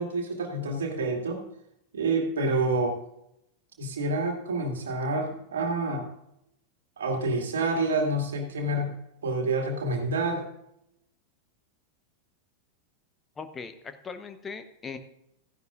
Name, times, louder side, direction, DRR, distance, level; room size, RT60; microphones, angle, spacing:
voice 1, 0.0-1.4 1.9-3.0 3.8-6.1 7.0-8.9 9.2-10.4, right 2 dB, 65° right, 3 dB, 2.1 m, -28 dB
voice 2, 13.4-15.0, left 5 dB, 20° left, 9 dB, 0.9 m, -39 dB
15.5 x 10.5 x 2.5 m, 0.81 s
figure-of-eight pair, 90°, 0 cm